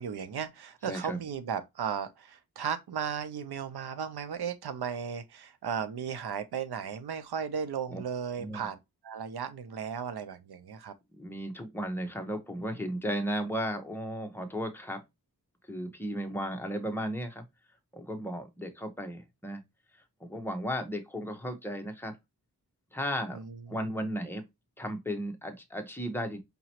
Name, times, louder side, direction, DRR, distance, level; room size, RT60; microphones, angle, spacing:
voice 1, 0.0-8.8 9.0-10.9 23.3-23.8, right 7 dB, 80° right, 0.6 m, -35 dB
voice 2, 0.8-1.2 7.9-8.0 8.4-8.7 11.2-15.0 15.7-17.4 17.9-19.6 20.2-22.1 22.9-23.4 23.7-24.4 24.8-26.4, equal, 5° left, 1.0 m, -35 dB
5.2 x 2.9 x 2.8 m
wide cardioid pair, 75°, 38 cm